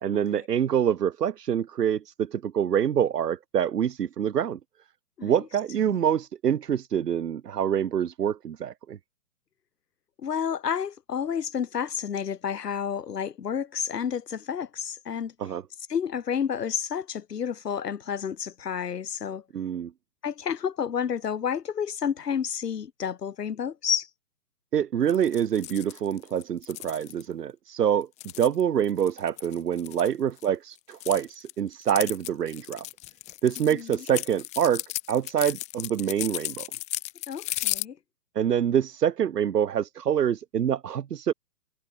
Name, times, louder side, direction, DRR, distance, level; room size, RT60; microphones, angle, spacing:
voice 1, 0.0-4.6 5.2-9.0 15.4-15.6 19.5-19.9 24.7-28.1 28.4-32.9 33.4-34.8 35.1-36.7 38.4-41.3, right 9 dB, 75° right, 2.0 m, -26 dB
voice 2, 10.2-15.3 15.9-19.4 20.2-24.1 33.7-34.0 37.3-38.0, left 7 dB, 80° left, 5.1 m, -30 dB
sound 1, 25.1-27.2 28.0-30.5 30.8-37.9, left 19 dB, 15° left, 1.4 m, -35 dB
hypercardioid pair, 165°, 47 cm